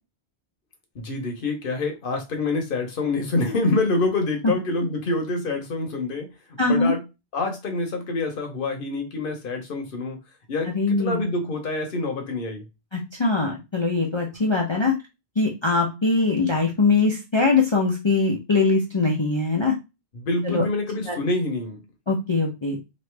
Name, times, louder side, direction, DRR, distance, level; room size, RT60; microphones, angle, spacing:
voice 1, 0.9-7.0 7.3-10.2 10.5-12.6 20.1-21.8, left 2 dB, 55° left, 0.9 m, -26 dB
voice 2, 6.6-6.9 10.7-11.2 12.9-14.9 15.4-19.7 20.4-20.6 21.1-21.2 22.1-22.8, left 3 dB, 35° left, 0.4 m, -22 dB
3.1 x 2.5 x 3.2 m
omnidirectional pair, 1.2 m